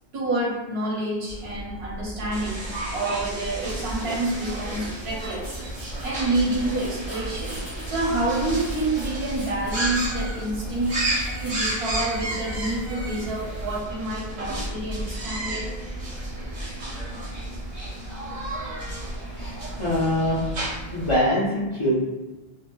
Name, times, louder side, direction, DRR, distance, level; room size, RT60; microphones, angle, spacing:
voice 1, 0.1-5.6 6.0-11.0 11.4-15.8, right 2 dB, 80° right, -3 dB, 1.0 m, -28 dB
sound 1, 1.3-21.2, right 1 dB, 60° left, 0.9 m, -36 dB
sound 2, 2.3-21.1, right 1 dB, 50° right, 0.7 m, -34 dB
sound 3, 3.6-13.8, right 1 dB, ahead, 0.6 m, -43 dB
voice 2, 19.4-20.5 20.9-21.9, left 1 dB, 40° left, -8 dB, 0.5 m, -24 dB
2.8 x 2.1 x 2.2 m, 1.1 s
omnidirectional pair, 1.0 m